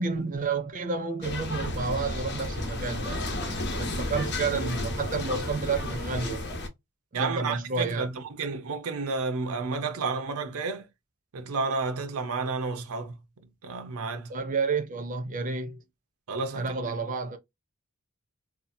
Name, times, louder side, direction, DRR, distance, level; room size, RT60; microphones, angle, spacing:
voice 1, 0.0-6.4 7.1-8.1 14.3-15.8 16.5-17.4, right 4 dB, 40° right, 0.5 m, -30 dB
sound 1, 1.2-6.7, left 1 dB, 55° left, 0.8 m, -32 dB
voice 2, 7.1-10.9 11.3-13.1 13.6-14.3 16.3-16.9, right 4 dB, 85° right, 0.6 m, -31 dB
2.7 x 2.4 x 2.6 m
head